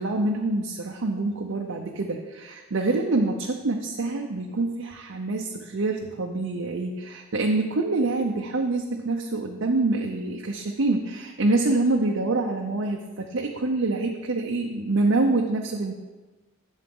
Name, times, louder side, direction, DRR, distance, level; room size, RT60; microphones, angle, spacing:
voice 1, 0.0-15.9, right 2 dB, 65° right, 1 dB, 0.7 m, -26 dB
11.5 x 7.2 x 3.8 m, 1.2 s
head